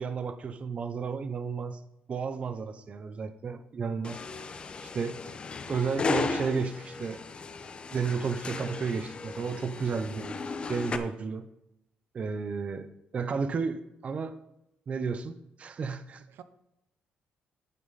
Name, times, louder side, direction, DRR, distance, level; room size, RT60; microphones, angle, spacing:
voice 1, 0.0-1.8 2.1-4.2 4.9-5.2 5.7-7.2 7.9-10.3 10.7-11.4 12.1-12.9 13.1-14.3 14.9-15.3 15.6-16.2, right 5 dB, 35° right, 11 dB, 0.7 m, -32 dB
sound 1, 4.0-11.0, left 4 dB, 30° left, 0.9 m, -35 dB
voice 2, 9.4-10.6 16.1-16.4, right 8 dB, 75° right, 12 dB, 0.8 m, -50 dB
11.0 x 9.2 x 4.1 m, 0.85 s
cardioid pair, 140°, 3 cm